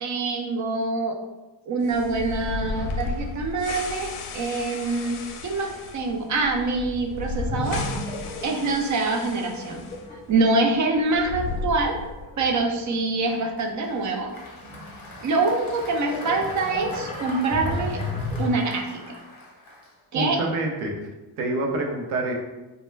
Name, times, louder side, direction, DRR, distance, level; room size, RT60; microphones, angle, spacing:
voice 1, 0.0-1.2 1.6-7.9 8.4-9.9 10.3-12.0 12.4-14.3 15.2-18.0 18.4-19.2 20.1-20.4, right 3 dB, 40° right, 2 dB, 0.4 m, -25 dB
sound 1, 1.8-10.0 10.3-10.4 11.0-12.4, left 4 dB, 75° left, 0.6 m, -34 dB
sound 2, 7.5-13.4 13.9-18.5, left 2 dB, 15° left, 0.5 m, -34 dB
Applause, 13.3-20.4, left 1 dB, 45° left, 0.8 m, -44 dB
voice 2, 20.1-21.0 21.4-22.3, right 2 dB, 85° right, 1 dB, 0.7 m, -26 dB
2.2 x 2.2 x 3.1 m, 1.1 s
cardioid pair, 85°, 50 cm